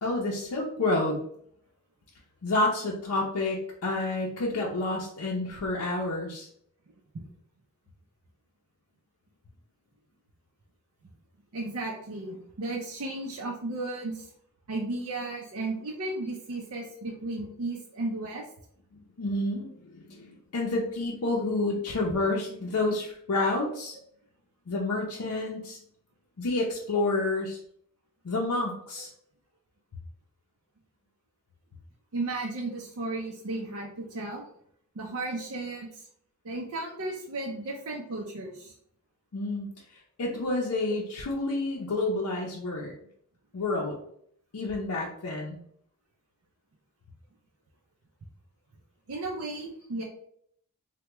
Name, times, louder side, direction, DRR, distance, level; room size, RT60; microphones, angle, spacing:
voice 1, 0.0-1.2 2.4-6.5 18.9-24.0 24.7-25.8 26.4-27.6 28.2-29.1 39.3-39.7 40.2-42.9 43.5-43.9 44.5-45.6, left 2 dB, 80° left, -3 dB, 0.5 m, -29 dB
voice 2, 11.5-14.3 14.7-18.4 32.1-34.4 34.9-36.1 36.4-38.7 49.1-50.0, right 2 dB, 65° right, -1 dB, 0.5 m, -34 dB
3.3 x 2.1 x 2.9 m, 0.67 s
head